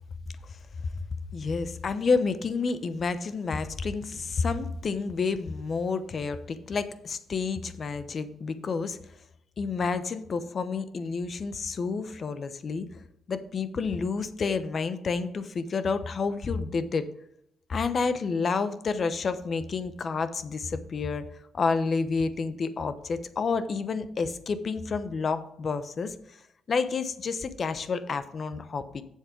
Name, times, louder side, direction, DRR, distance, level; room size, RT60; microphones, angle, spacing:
voice 1, 1.3-9.0 9.6-17.1 17.7-26.4 26.7-29.0, left 4 dB, 45° left, 12 dB, 0.9 m, -29 dB
7.4 x 7.4 x 4.5 m, 0.77 s
cardioid pair, 90°, 0 cm